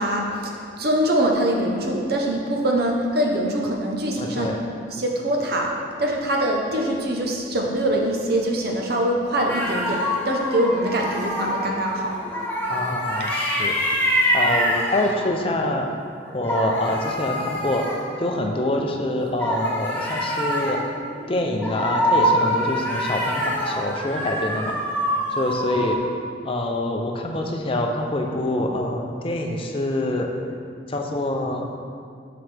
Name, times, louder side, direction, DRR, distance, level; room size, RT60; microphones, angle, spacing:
voice 1, 0.0-4.5 4.9-5.7 6.0-12.2, right 1 dB, 55° right, 0 dB, 0.8 m, -23 dB
voice 2, 4.2-4.6 12.7-13.7 14.3-15.9 16.3-17.8 18.2-20.8 21.3-24.8 25.3-26.0 26.4-30.3 30.9-31.7, left 1 dB, 30° left, 2 dB, 0.5 m, -25 dB
sound 1, 9.5-15.4 16.2-18.7 19.4-26.0, equal, 10° left, 0.9 m, -25 dB
7.6 x 5.9 x 3.4 m, 2.3 s
head